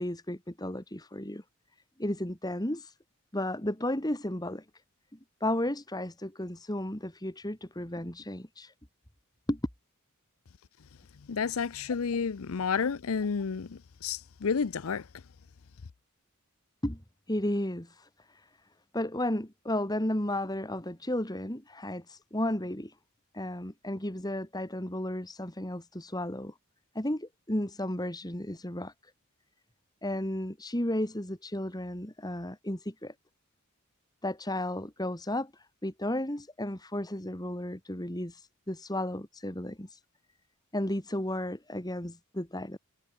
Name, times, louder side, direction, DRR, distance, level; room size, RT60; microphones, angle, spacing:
voice 1, 0.0-1.4 2.0-2.9 3.3-4.7 5.4-8.7 9.5-9.6 16.8-17.0 17.3-18.5 18.9-22.9 23.3-26.5 26.9-28.9 30.0-33.1 34.2-40.0 40.7-42.8, left 1 dB, 20° left, 2.5 m, -33 dB
voice 2, 11.3-15.0, left 5 dB, 70° left, 0.6 m, -31 dB
head